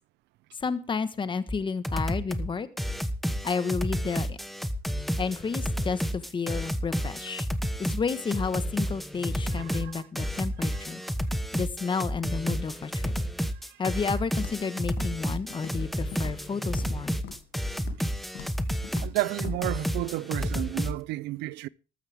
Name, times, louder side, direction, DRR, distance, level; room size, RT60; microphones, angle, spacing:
voice 1, 0.6-2.7 3.4-4.4 5.2-7.5 7.8-11.0 11.5-13.1 13.8-17.1, left 5 dB, 30° left, 1.3 m, -31 dB
sound 1, 1.5-1.6 1.8-2.5 2.8-20.9, equal, ahead, 1.2 m, -31 dB
voice 2, 9.5-10.8 13.7-13.8 19.0-21.7, right 18 dB, 85° right, 0.6 m, -33 dB
Walk footsteps, 14.4-14.7 15.0-15.3 15.5-15.9 16.1-17.0 17.2-17.5 17.8-18.1 18.3-18.6 18.8-19.1 19.4-19.6, left 9 dB, 85° left, 2.6 m, -43 dB
13.5 x 13.0 x 3.5 m
cardioid pair, 110°, 17 cm